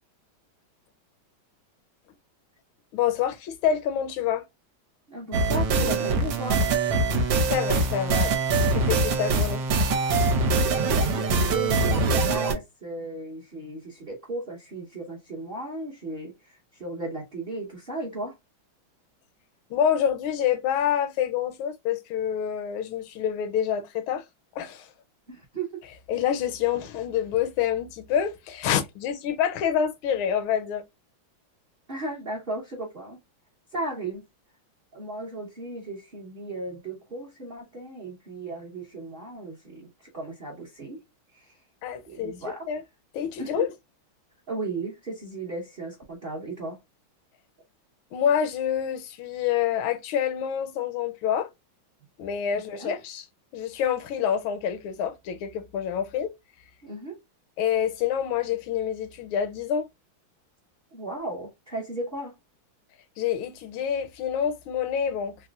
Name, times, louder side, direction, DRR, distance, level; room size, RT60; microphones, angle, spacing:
voice 1, 2.9-4.4 7.2-8.3 8.7-9.6 19.7-24.2 24.6-24.9 26.1-30.8 41.8-42.3 42.7-42.8 43.1-43.7 48.1-51.5 52.2-53.2 53.5-56.3 57.6-59.9 63.2-65.4, left 9 dB, 80° left, 1.4 m, -27 dB
voice 2, 5.1-6.6 10.5-18.4 25.3-25.8 31.9-33.2 33.7-34.2 34.9-41.0 41.3-41.6 42.1-42.7 43.4-43.7 44.5-46.8 52.7-52.9 56.8-57.2 60.9-62.4, right 2 dB, 45° right, 0.7 m, -35 dB
sound 1, 5.3-12.5, right 3 dB, 75° right, 1.3 m, -23 dB
4.1 x 2.1 x 2.3 m
omnidirectional pair, 2.2 m